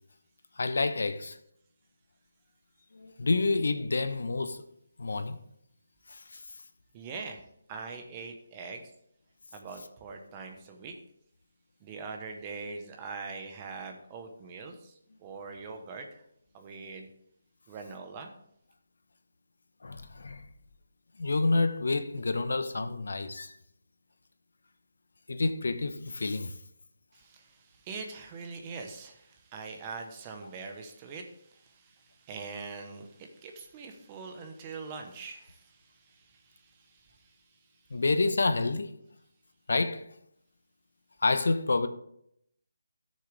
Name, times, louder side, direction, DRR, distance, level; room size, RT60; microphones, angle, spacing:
voice 1, 0.6-1.4 2.9-4.6 5.0-5.4 6.1-6.4 19.8-20.4 21.2-23.5 25.3-26.5 37.9-39.0 39.7-40.1 41.2-41.9, left 3 dB, 70° left, 1.0 m, -28 dB
voice 2, 6.9-8.9 9.5-10.9 11.8-16.2 16.5-17.1 17.7-18.3 27.1-37.4, right 4 dB, 20° right, 1.0 m, -43 dB
13.5 x 6.5 x 3.4 m
hypercardioid pair, 170°, 0 cm